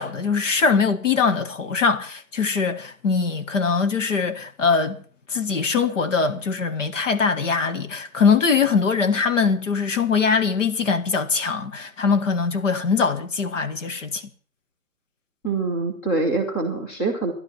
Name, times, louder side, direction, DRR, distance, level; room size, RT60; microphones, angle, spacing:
voice 1, 0.0-5.0 5.3-14.2, left 5 dB, 60° left, 1.6 m, -22 dB
voice 2, 15.4-17.3, right 3 dB, 10° left, 0.9 m, -24 dB
13.0 x 11.5 x 7.2 m
hypercardioid pair, 175°, 43 cm